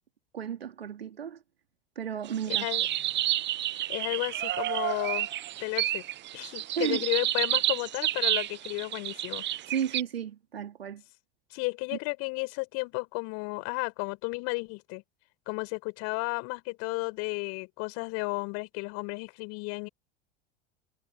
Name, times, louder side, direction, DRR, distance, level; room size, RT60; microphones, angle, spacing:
voice 1, 0.3-1.4 1.9-2.7 6.8-7.0 9.7-11.0, right 8 dB, 85° right, 3.2 m, -33 dB
sound 1, 2.3-10.0, right 13 dB, 35° right, 1.1 m, -30 dB
voice 2, 2.5-2.9 3.9-5.3 5.6-6.0 6.3-9.4 11.5-15.0 15.5-19.9, left 29 dB, 60° left, 7.5 m, -33 dB
hypercardioid pair, 80°, 30 cm